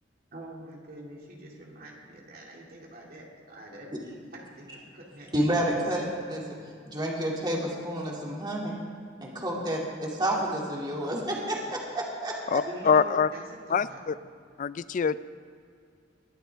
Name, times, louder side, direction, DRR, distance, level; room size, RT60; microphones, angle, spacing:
voice 1, 0.3-3.9 4.3-5.3 6.4-6.7 12.7-14.0, right 1 dB, 55° right, 2.4 m, -45 dB
voice 2, 5.3-6.4 6.9-8.8 9.2-12.6, right 1 dB, 25° right, 2.5 m, -30 dB
voice 3, 12.5-13.3 13.7-14.2 14.6-15.2, left 6 dB, 45° left, 0.3 m, -24 dB
21.5 x 12.5 x 3.5 m
head